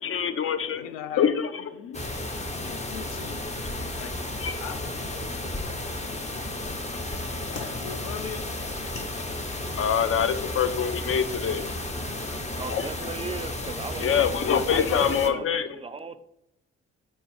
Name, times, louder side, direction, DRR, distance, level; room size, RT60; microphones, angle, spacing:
voice 1, 0.0-0.9 1.2-1.5 4.4-4.5 9.8-11.6 12.7-12.9 14.0-15.7, left 7 dB, 40° left, 11 dB, 0.7 m, -24 dB
voice 2, 0.7-1.3 1.8-3.5 4.0-4.2 4.6-5.4 7.3-8.5 13.0-13.2 14.4-15.5, left 9 dB, 75° left, 11 dB, 0.6 m, -40 dB
sound 1, 1.9-15.3, left 1 dB, 20° left, 1.0 m, -33 dB
sound 2, 6.7-11.9, left 3 dB, 60° left, 1.4 m, -47 dB
voice 3, 12.4-14.2 14.7-16.2, right 4 dB, 20° right, 12 dB, 0.5 m, -37 dB
4.4 x 4.4 x 5.2 m, 0.85 s
hypercardioid pair, 50°, 32 cm